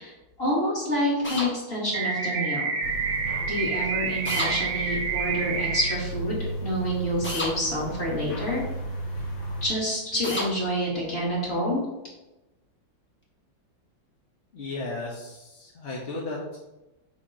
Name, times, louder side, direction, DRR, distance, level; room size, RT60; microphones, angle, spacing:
voice 1, 0.0-2.7 3.5-8.6 9.6-11.8, equal, 30° left, -5 dB, 2.2 m, -28 dB
sound 1, 1.2-1.5 4.3-4.5 7.2-7.5 10.2-10.5, left 1 dB, 10° left, 0.6 m, -29 dB
sound 2, 1.9-5.9, right 5 dB, 90° right, 1.6 m, -28 dB
sound 3, 2.8-9.7, right 1 dB, 70° left, 2.3 m, -35 dB
voice 2, 14.5-16.6, left 2 dB, 45° left, -5 dB, 0.9 m, -35 dB
7.0 x 2.9 x 4.9 m, 1.0 s
omnidirectional pair, 2.1 m